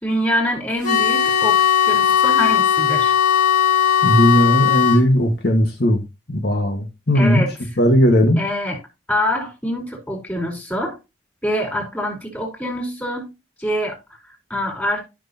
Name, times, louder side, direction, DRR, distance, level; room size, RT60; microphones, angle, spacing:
voice 1, 0.0-3.1 7.1-7.8 8.4-8.8 9.1-11.0 11.4-13.3 13.6-14.0 14.2-15.0, equal, 10° left, 4.0 m, -25 dB
sound 1, 0.8-5.0, left 9 dB, 45° left, 2.4 m, -17 dB
voice 2, 4.0-6.0 6.3-7.5 7.8-8.4, equal, 60° left, 1.5 m, -17 dB
13.5 x 6.2 x 2.8 m
head